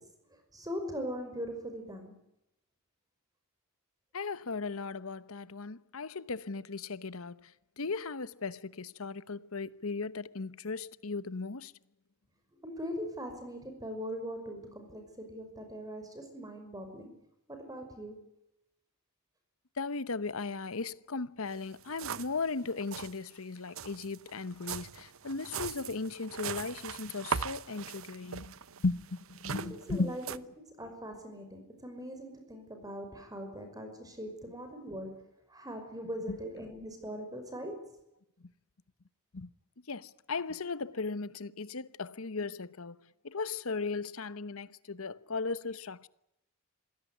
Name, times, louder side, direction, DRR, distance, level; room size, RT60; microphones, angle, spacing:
voice 1, 0.5-2.2 12.6-17.1 17.5-18.3 29.5-30.4 30.8-35.2 35.5-37.9, equal, 15° right, 5.7 m, -41 dB
voice 2, 4.1-7.5 7.8-11.7 19.8-30.2 36.3-36.4 39.3-39.5 39.9-43.0 43.2-46.1, left 4 dB, 70° left, 1.0 m, -37 dB
sound 1, 21.5-21.6 21.8-22.4 22.7-23.1 23.7-30.4, right 6 dB, 65° right, 0.9 m, -39 dB
26.0 x 17.5 x 9.8 m
head